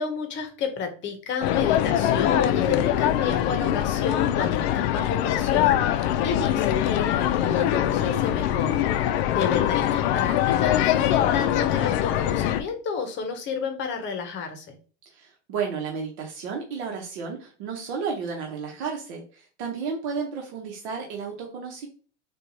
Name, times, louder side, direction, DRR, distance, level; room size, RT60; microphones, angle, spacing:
voice 1, 0.0-14.7, left 5 dB, 35° left, 6 dB, 0.7 m, -31 dB
sound 1, 1.4-12.6, left 11 dB, 70° left, 0.5 m, -23 dB
voice 2, 15.1-21.9, right 5 dB, 75° right, 1 dB, 1.0 m, -32 dB
4.4 x 2.4 x 2.7 m, 0.38 s
supercardioid pair, 140°, 33 cm